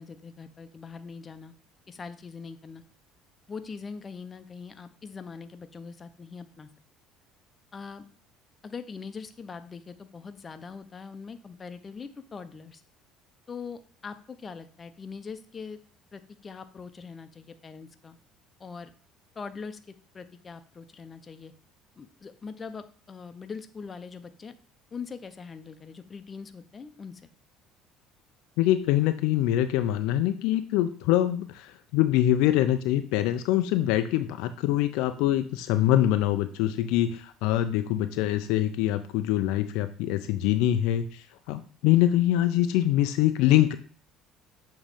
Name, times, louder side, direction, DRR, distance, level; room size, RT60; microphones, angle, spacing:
voice 1, 0.0-1.5 1.9-2.8 3.5-6.7 7.7-8.0 8.6-12.8 13.5-15.8 16.1-18.2 18.6-18.9 19.3-21.5 22.0-24.6 24.9-27.3, left 5 dB, 30° left, 10 dB, 0.7 m, -42 dB
voice 2, 28.6-43.8, left 13 dB, 75° left, 9 dB, 0.4 m, -24 dB
7.3 x 3.1 x 5.0 m, 0.42 s
hypercardioid pair, 75°, 0 cm